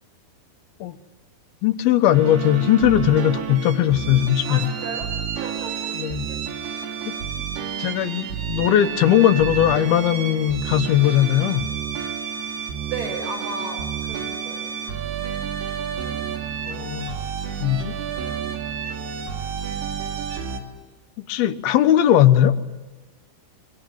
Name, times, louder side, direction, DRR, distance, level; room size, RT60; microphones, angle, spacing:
voice 1, 1.6-4.7 6.0-6.3 7.1-7.2 7.8-11.6 16.7-17.2 17.6-17.9 21.3-22.5, left 12 dB, 75° left, 10 dB, 3.0 m, -19 dB
sound 1, 2.1-20.6, right 7 dB, 85° right, 4.3 m, -30 dB
voice 2, 4.5-5.1 5.4-6.0 6.3-6.4 12.9-14.8, right 3 dB, 55° right, 4 dB, 7.1 m, -34 dB
25.0 x 24.5 x 9.2 m, 1.2 s
omnidirectional pair, 4.5 m